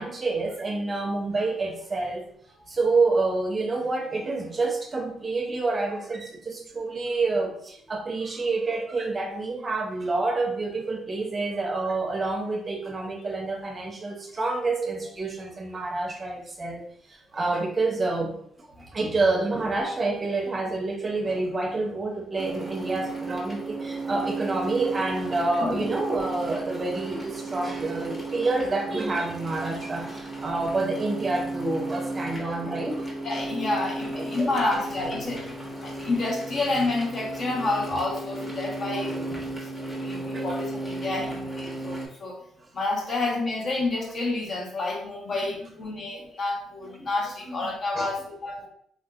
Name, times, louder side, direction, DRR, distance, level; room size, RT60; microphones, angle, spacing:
voice 1, 0.0-2.2 2.5-18.3 18.6-33.0 34.4-34.8 38.9-39.5 39.9-40.1 40.3-40.5 45.9-46.3 47.5-48.1, right 3 dB, 35° right, 1 dB, 0.6 m, -28 dB
sound 1, 22.3-42.1, right 2 dB, 20° left, 1.1 m, -34 dB
voice 2, 33.2-35.5 35.8-42.3 42.7-48.7, left 2 dB, 50° left, -1 dB, 1.1 m, -29 dB
3.6 x 2.6 x 2.4 m, 0.68 s
cardioid pair, 90°, 0 cm